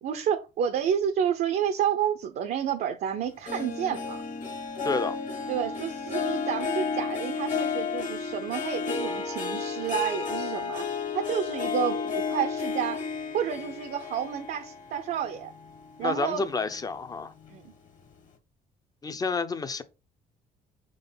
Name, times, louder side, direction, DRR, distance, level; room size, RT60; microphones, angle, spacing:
voice 1, 0.0-4.2 5.5-10.9 11.1-13.1 13.3-15.5 16.0-16.4 17.5-17.7, right 8 dB, 60° right, 0.7 m, -30 dB
Harp, 3.5-16.2 16.6-17.0 17.5-17.6, left 5 dB, 45° left, 1.7 m, -32 dB
voice 2, 4.8-5.2 16.0-17.3 19.0-19.8, left 4 dB, 20° left, 0.7 m, -29 dB
6.3 x 3.8 x 3.9 m
cardioid pair, 110°, 17 cm